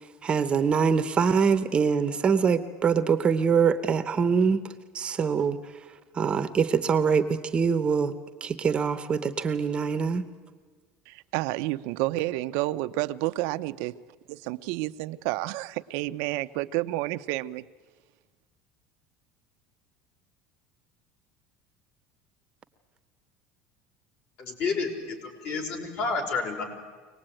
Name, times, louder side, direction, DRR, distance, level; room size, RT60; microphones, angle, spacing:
voice 1, 0.2-4.6 4.9-5.6 6.2-7.3 7.5-8.1 8.4-10.2, right 6 dB, 25° right, 10 dB, 0.9 m, -24 dB
voice 2, 11.1-13.9 14.3-17.6, right 17 dB, 70° right, 11 dB, 0.6 m, -30 dB
voice 3, 24.4-25.2 25.4-26.6, left 4 dB, 55° left, 3 dB, 4.9 m, -29 dB
24.5 x 19.0 x 9.0 m, 1.5 s
cardioid pair, 155°, 4 cm